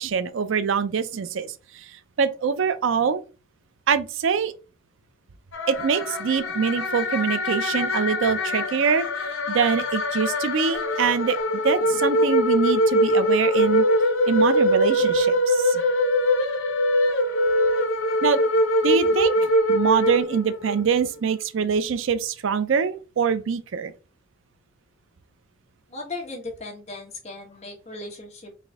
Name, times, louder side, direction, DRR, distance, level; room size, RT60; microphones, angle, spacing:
voice 1, 0.0-3.2 3.9-4.5 5.7-13.9 14.3-15.8 18.2-18.4 18.8-23.9, right 6 dB, 70° right, 0.4 m, -24 dB
sound 1, 5.5-20.8, equal, 75° left, 0.8 m, -23 dB
voice 2, 25.9-28.6, left 2 dB, 35° left, 1.2 m, -37 dB
4.1 x 2.6 x 3.4 m
head